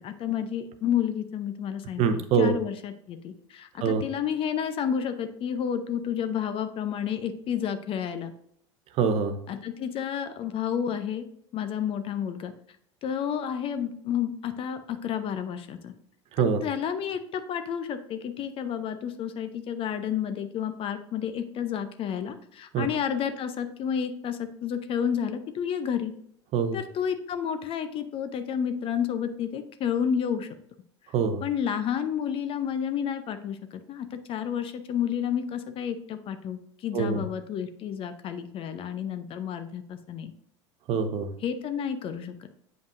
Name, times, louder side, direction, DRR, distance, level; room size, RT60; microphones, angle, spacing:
voice 1, 0.0-8.3 9.5-11.2 11.5-12.5 13.0-15.9 16.6-26.1 26.7-30.5 31.4-40.3 41.4-42.5, left 8 dB, 40° left, 10 dB, 0.6 m, -30 dB
voice 2, 2.0-2.6 3.8-4.0 8.9-9.4 16.3-16.6 22.7-22.9 26.5-26.8 31.1-31.4 36.9-37.3 40.9-41.3, right 6 dB, 45° right, 9 dB, 0.8 m, -24 dB
7.8 x 5.2 x 2.5 m, 0.69 s
hypercardioid pair, 80°, 15 cm